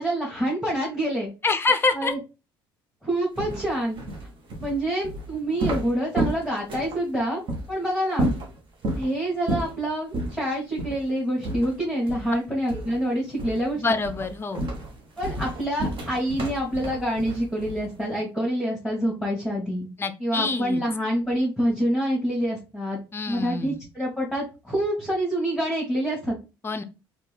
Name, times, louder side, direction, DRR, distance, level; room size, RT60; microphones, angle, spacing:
voice 1, 0.0-1.3 1.9-2.2 3.0-4.0 4.6-7.4 7.7-8.3 8.9-13.8 15.2-19.9 20.2-23.0 23.3-26.4, right 1 dB, ahead, -5 dB, 1.8 m, -26 dB
voice 2, 1.4-2.1 13.8-14.6 20.0-20.8 23.1-23.8 26.6-26.8, left 3 dB, 20° left, 9 dB, 0.6 m, -26 dB
sound 1, 3.4-7.0 7.5-7.7 8.1-9.1 9.5-9.8 10.1-10.4 10.8-11.0 11.4-12.4 12.7-13.0 13.4-13.7 14.0-18.0, right 1 dB, 45° right, 1.2 m, -30 dB
4.4 x 2.5 x 3.4 m, 0.29 s
figure-of-eight pair, 55°, 12 cm